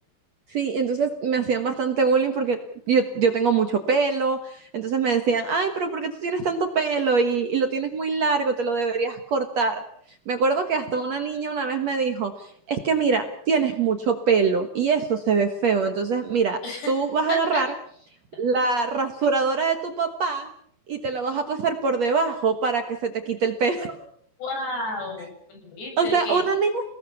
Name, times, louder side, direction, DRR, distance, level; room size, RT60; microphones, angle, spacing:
voice 1, 0.5-2.6 2.9-9.8 10.3-16.6 16.9-17.7 18.4-20.5 20.9-24.1 26.0-26.8, right 5 dB, 55° right, 6 dB, 2.0 m, -23 dB
voice 2, 17.3-17.6 24.4-26.4, left 2 dB, 80° left, 3 dB, 9.7 m, -32 dB
29.5 x 19.0 x 7.2 m, 0.65 s
omnidirectional pair, 4.8 m